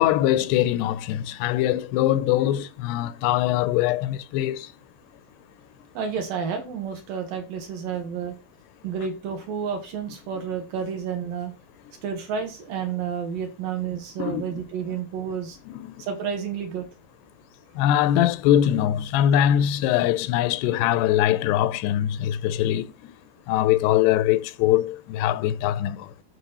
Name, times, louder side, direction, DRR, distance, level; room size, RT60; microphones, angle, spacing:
voice 1, 0.0-4.7 14.2-14.5 15.7-16.0 17.8-23.2 23.5-26.1, left 12 dB, 90° left, 2.7 m, -22 dB
voice 2, 5.9-8.3 8.8-11.5 12.0-15.6 16.0-16.9, right 7 dB, 65° right, 3.0 m, -30 dB
12.5 x 4.3 x 4.1 m
omnidirectional pair, 4.6 m